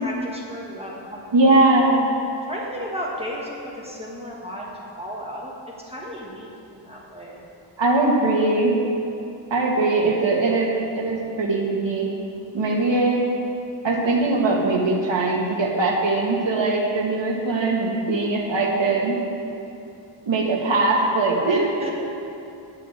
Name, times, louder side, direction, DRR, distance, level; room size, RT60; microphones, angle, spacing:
voice 1, 0.0-1.7 2.5-4.7 5.0-5.5 5.9-7.4 12.7-13.0 21.8-21.9, equal, 15° right, -4 dB, 1.4 m, -34 dB
voice 2, 1.3-2.1 7.8-8.8 9.5-12.1 12.5-13.2 13.8-19.2 20.3-21.9, right 2 dB, 70° right, -2 dB, 1.8 m, -21 dB
9.2 x 6.8 x 7.9 m, 2.7 s
wide cardioid pair, 170°, 46 cm